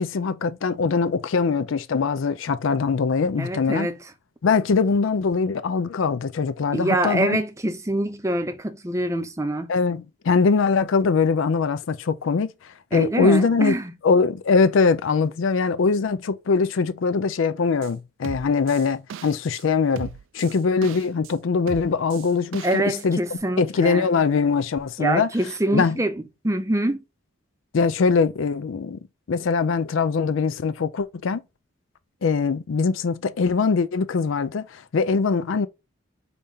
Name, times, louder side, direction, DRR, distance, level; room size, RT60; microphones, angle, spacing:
voice 1, 0.0-3.9 4.4-7.4 9.7-13.8 14.0-23.2 23.6-25.3 25.7-26.0 27.7-29.0 29.3-31.4 32.2-35.7, left 5 dB, 75° left, 0.4 m, -22 dB
voice 2, 3.4-4.0 6.7-9.7 12.9-13.9 22.6-24.1 25.0-26.1 26.4-27.0, right 1 dB, 15° right, 0.5 m, -25 dB
sound 1, 17.8-17.9 18.2-19.6 20.0-21.3 21.7-23.1 23.4-23.5, right 7 dB, 75° right, 0.4 m, -38 dB
5.0 x 2.8 x 3.5 m
head